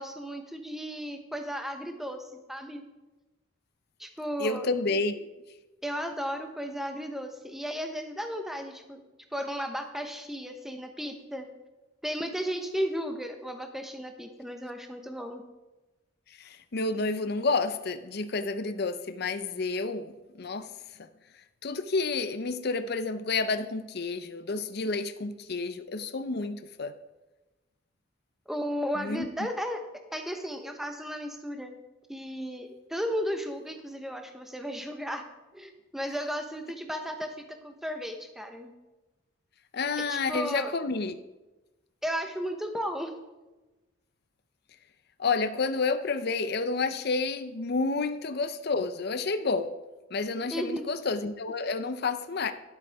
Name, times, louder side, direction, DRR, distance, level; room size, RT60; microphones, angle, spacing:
voice 1, 0.0-2.8 4.0-4.7 5.8-9.0 9.3-11.5 12.0-15.4 28.5-29.8 30.1-31.8 32.1-35.3 35.5-38.7 40.0-40.7 42.0-43.1 50.5-50.8, equal, ahead, 5 dB, 0.9 m, -34 dB
voice 2, 4.4-5.3 16.4-20.7 21.0-21.1 21.6-26.9 29.0-29.3 39.7-41.2 45.2-49.7 50.1-52.5, left 3 dB, 50° left, 10 dB, 0.6 m, -30 dB
12.5 x 11.5 x 3.5 m, 1.1 s
head